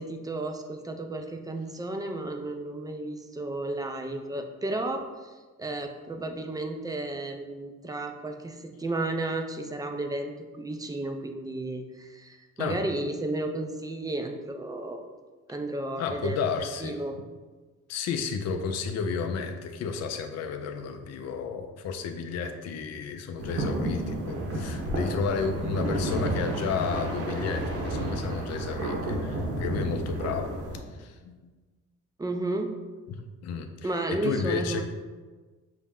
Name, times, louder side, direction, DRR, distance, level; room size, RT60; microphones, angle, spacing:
voice 1, 0.0-5.3 5.6-15.0 15.5-17.1 32.2-32.8 33.8-34.8, right 2 dB, 15° right, 4 dB, 0.4 m, -33 dB
voice 2, 16.0-17.0 17.9-30.5 30.9-31.4 33.1-34.8, left 5 dB, 60° left, 5 dB, 0.4 m, -32 dB
sound 1, 23.4-30.8, right 1 dB, 50° right, 0.9 m, -31 dB
5.4 x 2.0 x 3.6 m, 1.3 s
cardioid pair, 90°, 30 cm